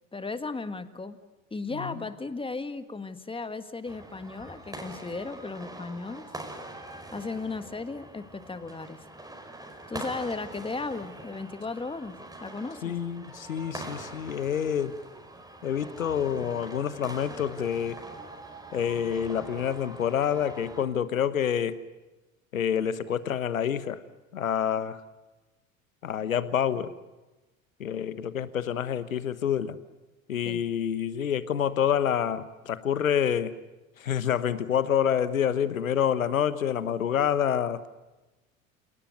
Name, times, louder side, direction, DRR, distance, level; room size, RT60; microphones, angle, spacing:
voice 1, 0.1-1.2 1.5-6.3 7.1-9.0 9.9-12.1 12.4-12.9 30.4-30.6, left 3 dB, 15° left, 11 dB, 1.7 m, -35 dB
sound 1, 3.8-20.8, right 1 dB, 10° right, 5.2 m, -43 dB
voice 2, 12.8-14.9 15.6-18.0 18.7-21.8 22.5-24.0 24.3-25.0 26.0-26.9 27.8-29.8 30.3-33.5 34.0-37.9, left 9 dB, 85° left, 14 dB, 1.3 m, -27 dB
27.5 x 18.5 x 9.4 m, 1.1 s
figure-of-eight pair, 75°, 40 cm